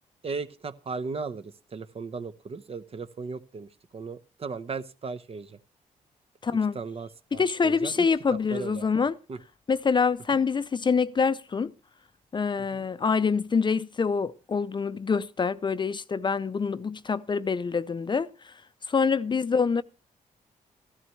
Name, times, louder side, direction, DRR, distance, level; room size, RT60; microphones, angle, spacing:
voice 1, 0.2-5.6 6.5-8.1 8.5-8.9 9.3-9.4 12.7-12.8, right 4 dB, 45° right, 0.8 m, -36 dB
voice 2, 6.4-6.8 7.3-9.2 9.7-11.7 12.3-18.3 18.9-19.8, left 5 dB, 35° left, 0.5 m, -25 dB
14.0 x 12.5 x 3.1 m
cardioid pair, 70°, 14 cm